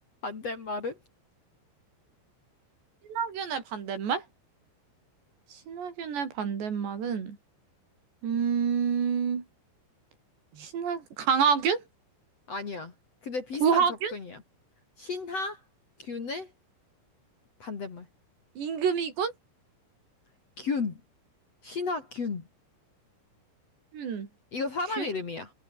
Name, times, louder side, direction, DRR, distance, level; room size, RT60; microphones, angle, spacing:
voice 1, 0.2-1.0 12.5-12.9 13.2-14.4 15.0-15.6 16.0-16.5 17.6-18.1 20.6-21.0 21.6-22.4 24.5-25.5, left 4 dB, 40° left, 3.2 m, -33 dB
voice 2, 3.1-4.2 5.5-7.4 8.2-9.4 10.5-11.8 13.6-14.1 18.6-19.3 23.9-24.3 25.0-25.1, right 7 dB, 60° right, 6.1 m, -28 dB
omnidirectional pair, 5.6 m